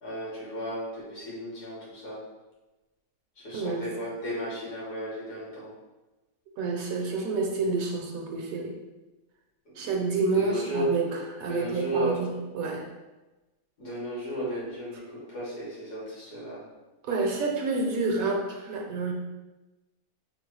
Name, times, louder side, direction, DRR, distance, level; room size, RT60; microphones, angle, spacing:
voice 1, 0.0-2.2 3.4-5.7 9.8-9.9 10.3-10.9 11.5-12.3 13.8-16.6, right 1 dB, 90° left, -7 dB, 2.0 m, -34 dB
voice 2, 3.5-3.9 6.6-8.7 9.8-11.1 11.3-12.9 17.0-19.1, right 3 dB, 70° right, 0 dB, 1.0 m, -29 dB
3.9 x 2.3 x 4.6 m, 1.1 s
omnidirectional pair, 1.6 m